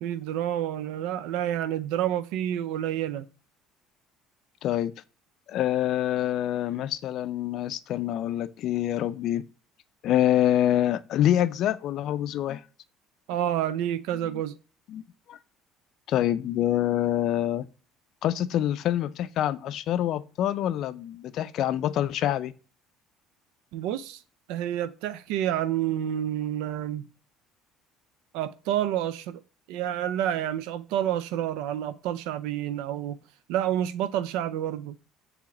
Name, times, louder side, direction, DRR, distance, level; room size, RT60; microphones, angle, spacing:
voice 1, 0.0-3.2 13.3-14.5 23.7-24.2 24.5-27.0 28.3-29.4 29.7-33.2 33.5-35.0, right 11 dB, 80° right, 0.4 m, -29 dB
voice 2, 4.6-4.9 5.5-9.4 10.0-12.6 14.9-15.0 15.3-15.4 16.1-17.7 18.2-22.5, left 12 dB, 60° left, 0.4 m, -26 dB
4.7 x 3.5 x 2.9 m
supercardioid pair, 85°, 0 cm